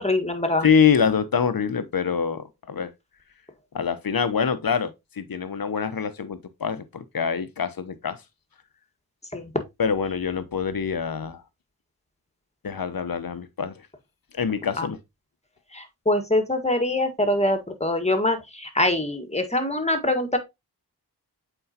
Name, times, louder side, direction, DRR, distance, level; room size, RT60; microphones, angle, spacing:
voice 1, 0.0-0.7 9.3-9.5 14.8-14.9 15.7-20.4, left 1 dB, 15° left, 1.7 m, -24 dB
voice 2, 0.6-2.9 3.7-8.2 9.8-11.4 12.6-13.8 14.3-15.0, left 6 dB, 60° left, 0.9 m, -25 dB
7.9 x 4.5 x 2.9 m
cardioid pair, 45°, 39 cm